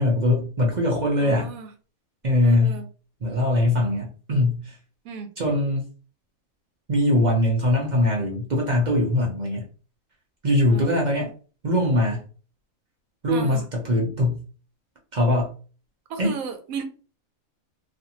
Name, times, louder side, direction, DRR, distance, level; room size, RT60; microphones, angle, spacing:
voice 1, 0.0-1.5 2.2-2.8 3.2-4.7 5.4-5.8 6.9-9.6 10.4-11.3 11.6-12.2 13.2-14.4 15.1-15.5 16.2-16.4, left 1 dB, 45° right, -2 dB, 0.6 m, -21 dB
voice 2, 1.2-1.7 2.4-2.8 5.0-5.3 10.7-11.0 13.3-13.6 16.1-16.8, right 5 dB, 80° right, 7 dB, 1.0 m, -34 dB
2.5 x 2.5 x 2.8 m, 0.37 s
omnidirectional pair, 1.5 m